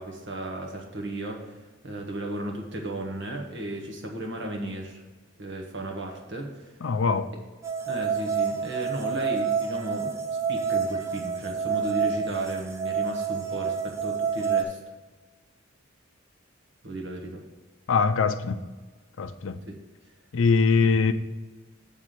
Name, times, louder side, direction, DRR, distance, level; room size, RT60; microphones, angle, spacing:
voice 1, 0.0-5.0 5.4-6.7 7.9-14.8 16.8-17.4 19.7-19.8 20.8-20.9, right 1 dB, 60° right, 1.4 m, -35 dB
voice 2, 6.8-7.3 17.9-18.6 19.2-19.6 20.3-21.1, left 4 dB, 70° left, 0.5 m, -22 dB
sound 1, 7.6-14.6, right 6 dB, 15° right, 0.6 m, -28 dB
7.5 x 3.6 x 6.5 m
head